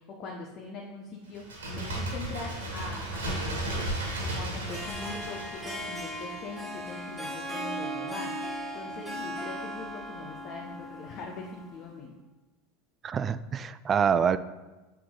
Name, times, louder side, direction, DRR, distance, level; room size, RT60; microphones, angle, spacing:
voice 1, 0.0-12.1, left 3 dB, 40° left, 0 dB, 0.9 m, -42 dB
Bird, 1.3-6.9 7.2-7.3, right 1 dB, 70° right, 1.9 m, -35 dB
Harp, 4.7-11.9, equal, 5° right, 1.8 m, -38 dB
voice 2, 13.0-14.4, right 7 dB, 30° right, 14 dB, 0.3 m, -26 dB
7.4 x 4.3 x 3.8 m, 1.1 s
figure-of-eight pair, 80°, 0 cm